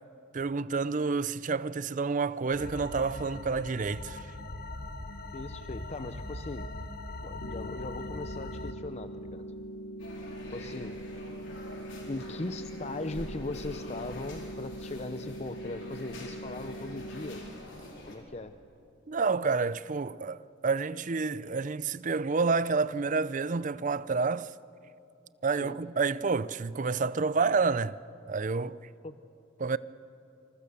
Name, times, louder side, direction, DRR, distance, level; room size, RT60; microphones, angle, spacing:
voice 1, 0.3-4.3 19.1-24.5 25.4-28.0 28.3-28.8 29.6-29.8, right 4 dB, 40° right, 0.5 m, -29 dB
sound 1, 2.5-8.7, left 2 dB, 50° left, 1.3 m, -41 dB
voice 2, 5.3-6.7 7.2-9.5 10.5-11.0 12.1-17.4 17.8-18.6 25.6-25.8 29.0-29.2, left 2 dB, 35° left, 0.6 m, -39 dB
sound 2, 7.4-17.4, equal, 85° left, 1.5 m, -42 dB
sound 3, 10.0-18.2, left 1 dB, 70° left, 4.7 m, -46 dB
27.5 x 26.5 x 6.9 m
head